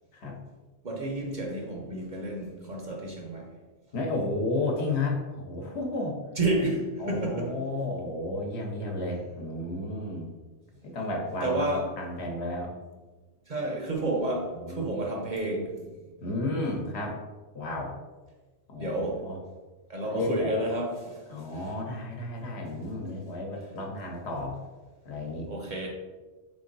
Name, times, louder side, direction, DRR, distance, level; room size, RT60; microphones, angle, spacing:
voice 1, 0.8-3.5 6.4-7.6 11.4-12.0 13.5-16.0 18.8-19.3 19.9-21.2 21.5-21.7 25.5-25.9, right 2 dB, 50° right, 0.7 m, -30 dB
voice 2, 3.9-6.2 7.0-10.3 10.8-12.7 14.5-14.9 16.2-17.1 17.5-17.9 18.7-19.4 20.1-20.5 21.3-24.6 25.0-25.5, left 2 dB, 65° left, 1.1 m, -32 dB
3.6 x 3.5 x 3.9 m
omnidirectional pair, 1.2 m